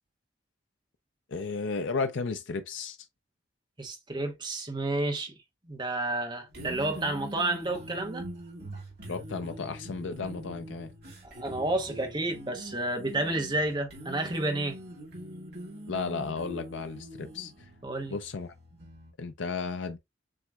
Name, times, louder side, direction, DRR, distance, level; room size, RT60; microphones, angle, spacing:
voice 1, 1.3-3.0 9.1-10.9 15.9-17.5 18.1-18.5 19.2-20.0, left 4 dB, 75° left, 0.5 m, -34 dB
voice 2, 3.8-5.3 5.7-8.3 11.2-14.8 17.8-18.2, right 2 dB, 25° right, 1.0 m, -30 dB
sound 1, 6.5-19.1, right 1 dB, 55° right, 2.1 m, -43 dB
7.5 x 3.0 x 2.3 m
head